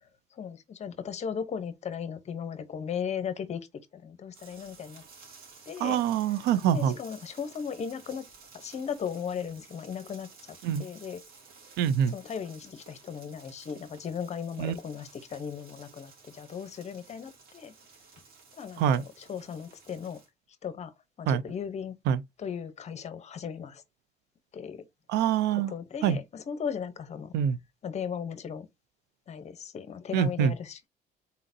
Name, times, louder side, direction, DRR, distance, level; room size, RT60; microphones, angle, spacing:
voice 1, 0.3-3.7 3.9-5.0 5.7-6.0 6.7-8.2 8.5-11.2 12.1-17.7 18.6-20.2 20.6-20.9 21.2-21.9 22.4-23.8 24.5-24.8 25.7-27.3 27.8-28.7 29.3-30.9, left 7 dB, 40° left, 0.8 m, -37 dB
sound 1, 4.3-20.3, right 4 dB, 60° right, 2.6 m, -54 dB
voice 2, 5.8-7.0 10.6-10.8 11.8-12.1 14.6-14.7 18.8-19.0 21.3-21.4 22.1-22.2 25.1-25.7 26.0-26.2 27.3-27.6 30.1-30.5, right 9 dB, 80° right, 0.5 m, -25 dB
4.2 x 3.8 x 2.6 m
cardioid pair, 110°, 17 cm